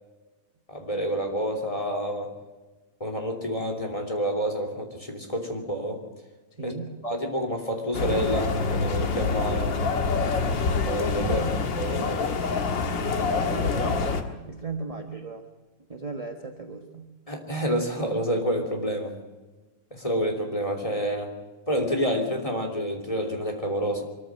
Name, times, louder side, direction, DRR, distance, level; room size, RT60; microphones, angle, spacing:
voice 1, 0.7-2.3 3.0-6.0 6.6-6.7 7.0-9.7 10.9-11.4 11.8-12.2 17.3-19.1 19.9-21.3 21.7-24.0, equal, 15° left, 3 dB, 3.0 m, -28 dB
voice 2, 6.5-7.0 11.2-11.7 13.5-15.5 15.9-17.2, right 3 dB, 20° right, 5 dB, 1.1 m, -37 dB
sound 1, 7.9-14.2, left 4 dB, 60° left, 2.3 m, -26 dB
24.0 x 14.5 x 7.6 m, 1.2 s
omnidirectional pair, 2.4 m